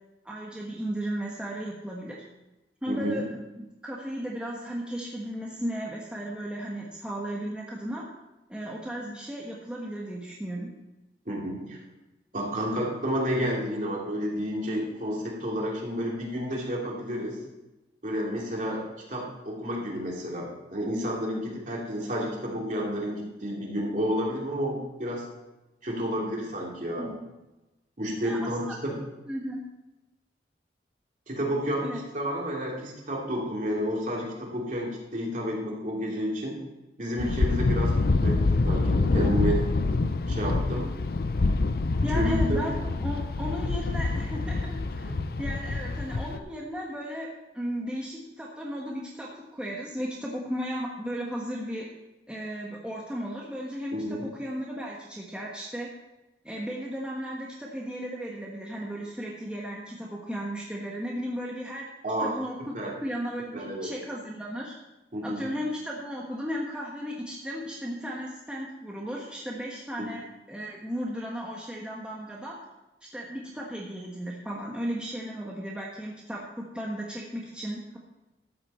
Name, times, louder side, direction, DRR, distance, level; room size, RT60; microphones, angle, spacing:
voice 1, 0.2-2.2 2.8-8.0 8.5-10.7 27.0-27.3 28.2-28.8 29.2-29.6 31.8-32.0 42.0-45.1 45.4-47.3 47.5-51.9 52.3-55.9 56.4-61.9 62.2-64.7 65.2-70.2 70.5-72.6 73.1-78.0, equal, 5° right, -4 dB, 1.2 m, -35 dB
voice 2, 2.9-3.2 11.3-11.8 12.3-17.4 18.0-25.2 25.8-27.1 28.0-28.9 31.3-36.6 37.0-37.9 38.2-39.6 40.3-40.9 42.1-42.7 45.0-45.2 53.9-54.2 62.0-62.3 62.7-63.0 63.5-63.9 65.1-65.5 70.0-70.1, equal, 45° right, -3 dB, 2.9 m, -30 dB
sound 1, 37.2-46.4, left 3 dB, 55° left, 0.5 m, -26 dB
13.0 x 8.5 x 4.4 m, 1.0 s
head